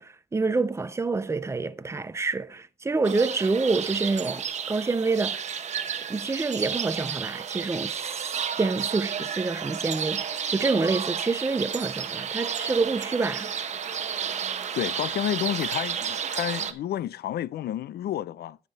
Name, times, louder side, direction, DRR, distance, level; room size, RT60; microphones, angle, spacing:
voice 1, 0.0-5.4 6.1-13.5, right 3 dB, 15° right, 0.4 m, -27 dB
sound 1, 3.0-16.7, right 7 dB, 40° right, 0.9 m, -32 dB
voice 2, 14.7-18.6, left 11 dB, 60° left, 0.4 m, -30 dB
10.5 x 7.3 x 3.9 m
wide cardioid pair, 180°, 18 cm